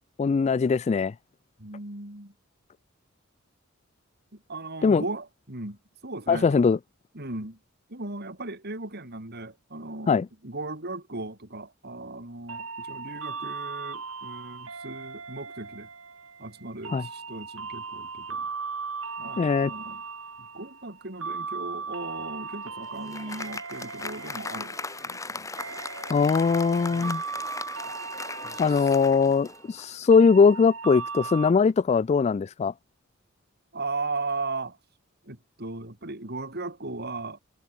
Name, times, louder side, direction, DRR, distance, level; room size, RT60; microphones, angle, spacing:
voice 1, 0.2-1.1 4.8-5.0 6.3-6.8 10.1-10.3 16.9-17.0 19.4-19.7 26.1-27.2 28.6-32.7, left 5 dB, 30° left, 0.3 m, -21 dB
voice 2, 1.6-2.3 4.3-6.7 7.1-7.6 7.9-15.9 16.4-18.5 19.2-20.0 20.4-24.8 25.0-25.5 26.8-27.2 28.4-29.0 33.7-34.8 35.2-37.4, right 3 dB, 50° right, 4.9 m, -37 dB
sound 1, 12.5-31.5, right 5 dB, 75° right, 7.6 m, -38 dB
Applause, 22.5-30.0, left 3 dB, 15° left, 1.2 m, -38 dB
head